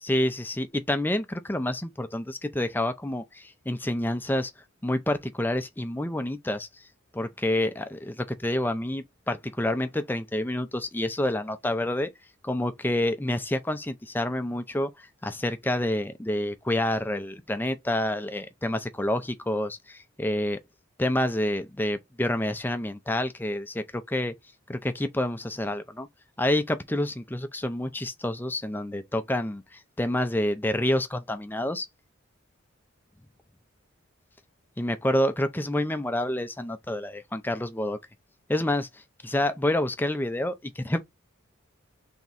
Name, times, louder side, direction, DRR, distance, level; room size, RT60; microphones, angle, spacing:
voice 1, 0.0-4.5 4.8-6.7 7.1-12.1 12.4-14.9 15.2-20.6 21.0-24.3 24.7-26.1 26.4-31.9 34.8-38.0 38.5-38.9 39.2-41.0, left 1 dB, 10° left, 0.5 m, -28 dB
3.6 x 3.0 x 4.1 m
head